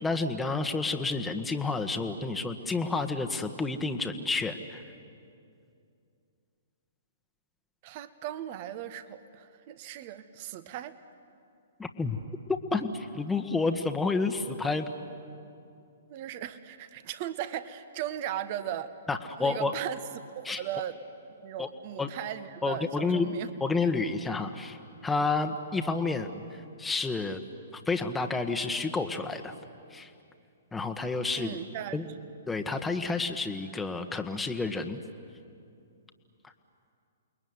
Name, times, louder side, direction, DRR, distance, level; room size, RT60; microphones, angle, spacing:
voice 1, 0.0-4.8 11.8-12.2 12.5-14.9 19.1-19.7 20.4-20.6 21.6-21.7 22.0-22.1 22.6-23.3 23.6-24.8 25.0-26.4 26.8-27.4 27.9-29.5 29.9-30.1 30.7-31.5 31.9-32.0 32.5-35.0, left 3 dB, 10° left, 5 dB, 1.5 m, -30 dB
voice 2, 7.8-10.9 16.1-18.9 19.4-21.0 21.4-23.5 31.3-32.1, right 11 dB, 45° right, 12 dB, 1.5 m, -37 dB
28.5 x 21.5 x 9.7 m, 2.5 s
figure-of-eight pair, 120°, 0 cm